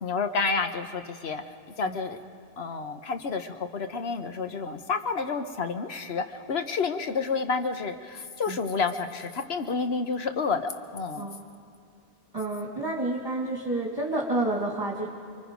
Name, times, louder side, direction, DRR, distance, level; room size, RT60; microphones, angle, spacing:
voice 1, 0.0-1.4 1.8-2.2 2.6-11.3, left 4 dB, 80° left, 8 dB, 1.3 m, -30 dB
voice 2, 11.1-11.6 12.3-15.1, right 2 dB, 20° right, -3 dB, 2.2 m, -30 dB
29.0 x 23.0 x 5.2 m, 2.3 s
omnidirectional pair, 1.0 m